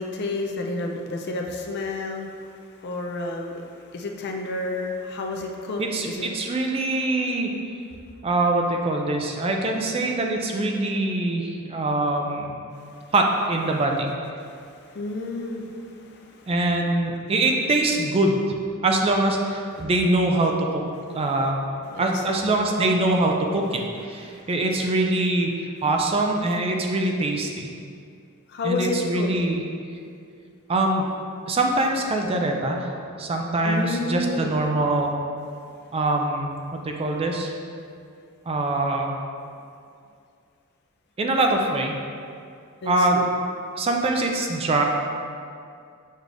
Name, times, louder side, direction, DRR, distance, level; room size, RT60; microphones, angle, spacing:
voice 1, 0.0-2.5 2.8-3.6 3.9-6.3 14.4-16.5 19.8-19.9 21.9-22.5 24.3-24.5 28.5-29.3 33.6-34.6 42.8-43.3, left 2 dB, 50° left, 2 dB, 0.4 m, -31 dB
voice 2, 5.8-7.5 8.2-12.6 13.1-14.1 16.5-18.4 18.8-20.8 21.1-21.6 22.0-27.7 28.6-29.6 30.7-31.1 31.5-32.9 33.2-35.1 35.9-36.5 36.9-37.5 38.5-39.1 41.2-42.0 42.9-43.2 43.8-44.8, right 2 dB, 25° right, 2 dB, 0.3 m, -23 dB
6.4 x 3.3 x 2.5 m, 2.3 s
head